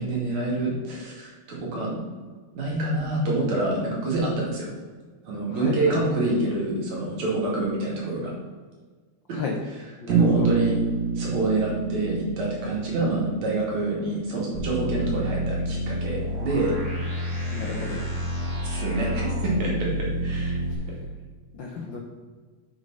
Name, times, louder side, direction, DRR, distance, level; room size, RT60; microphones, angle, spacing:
voice 1, 0.0-2.0 2.5-4.7 5.3-8.3 10.1-10.7 11.2-16.8 18.6-20.6, right 2 dB, 70° right, -4 dB, 3.7 m, -26 dB
voice 2, 5.5-6.0 9.3-9.6 10.0-10.5 17.5-18.0 20.7-21.0 21.5-22.0, left 4 dB, 80° left, 0 dB, 1.0 m, -33 dB
Bass guitar, 10.1-14.1, right 5 dB, 85° right, 2.6 m, -29 dB
sound 1, 14.5-20.7, equal, 40° right, 2.6 m, -29 dB
6.9 x 6.7 x 5.3 m, 1.4 s
omnidirectional pair, 3.4 m